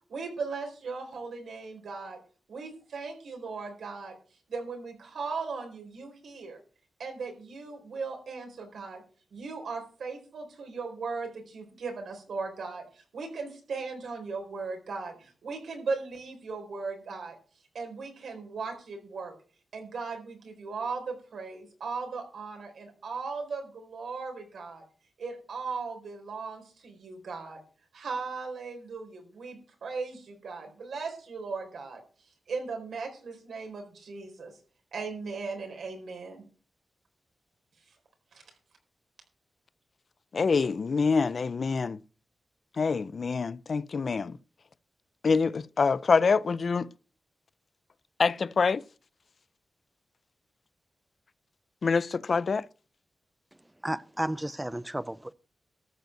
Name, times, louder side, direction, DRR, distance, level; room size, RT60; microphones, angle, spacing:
voice 1, 0.1-2.2 2.5-4.1 4.5-6.6 7.0-9.0 9.3-17.4 17.7-19.3 19.7-24.8 25.2-27.6 27.9-32.0 32.5-34.5 34.9-36.4 38.3-38.4, right 4 dB, 85° right, 4.4 m, -37 dB
voice 2, 40.3-42.0 42.8-44.4 45.2-46.9 48.2-48.8 51.8-52.7, left 5 dB, 55° left, 0.4 m, -26 dB
voice 3, 53.8-55.3, right 1 dB, 10° right, 0.4 m, -33 dB
13.5 x 5.4 x 7.8 m
wide cardioid pair, 110°, 0 cm